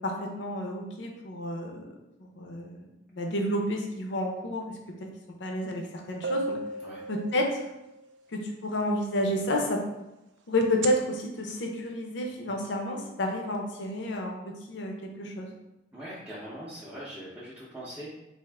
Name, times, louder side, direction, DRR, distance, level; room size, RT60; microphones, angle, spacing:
voice 1, 0.0-1.8 2.2-4.8 5.4-6.6 7.1-7.6 8.3-9.8 10.5-15.5, left 1 dB, 70° left, 1 dB, 0.6 m, -30 dB
sound 1, 5.7-5.8 6.2-8.0 10.6-10.9, right 3 dB, 70° right, 0.4 m, -34 dB
voice 2, 15.9-18.2, equal, 5° right, -9 dB, 0.6 m, -41 dB
3.5 x 2.5 x 3.4 m, 0.93 s
head